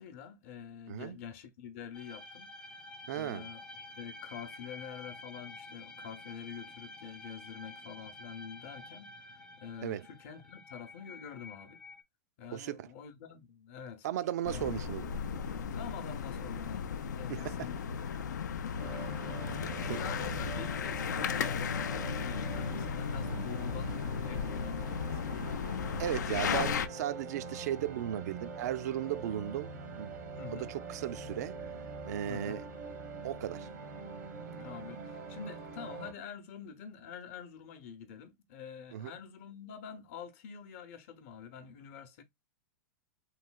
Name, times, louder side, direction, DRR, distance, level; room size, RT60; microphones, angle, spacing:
voice 1, 0.0-2.9 3.1-11.8 12.4-14.1 14.4-14.8 15.7-17.8 18.8-25.5 30.4-30.7 32.3-32.6 34.5-42.2, left 7 dB, 55° left, 0.7 m, -47 dB
sound 1, 1.9-12.0, left 2 dB, 10° left, 0.4 m, -50 dB
voice 2, 3.1-3.5 9.8-10.0 12.5-12.9 14.0-15.1 17.3-17.5 19.9-20.0 26.0-30.1 30.5-31.6 32.0-32.6 33.2-33.7 38.9-39.1, right 12 dB, 65° right, 0.3 m, -36 dB
sound 2, 14.4-26.9, left 6 dB, 90° left, 0.4 m, -35 dB
sound 3, 18.8-36.1, right 3 dB, 85° right, 1.0 m, -44 dB
3.1 x 2.8 x 2.2 m
hypercardioid pair, 130°, 9 cm